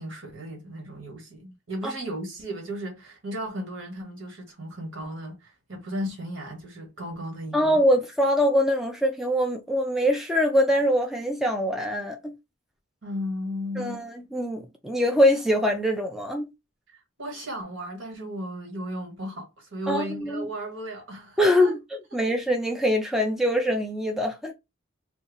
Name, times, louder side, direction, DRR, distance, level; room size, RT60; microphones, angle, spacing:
voice 1, 0.0-7.8 13.0-14.0 16.9-21.7, equal, 70° right, 1.5 m, -35 dB
voice 2, 7.5-12.3 13.8-16.5 19.9-20.5 21.4-21.8 22.1-24.5, equal, ahead, 0.4 m, -23 dB
2.7 x 2.3 x 3.9 m
head